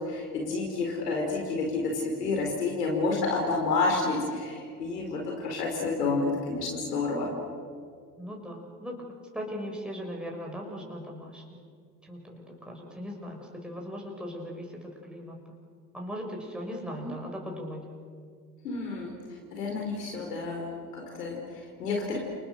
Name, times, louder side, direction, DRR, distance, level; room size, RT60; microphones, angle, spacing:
voice 1, 0.0-7.3 17.0-17.1 18.6-19.1 19.5-22.2, left 3 dB, 75° left, 0 dB, 5.0 m, -30 dB
voice 2, 8.2-9.0 9.3-11.4 12.1-15.4 15.9-17.8, equal, ahead, -1 dB, 6.2 m, -38 dB
30.0 x 28.5 x 6.8 m, 2.1 s
figure-of-eight pair, 70°, 48 cm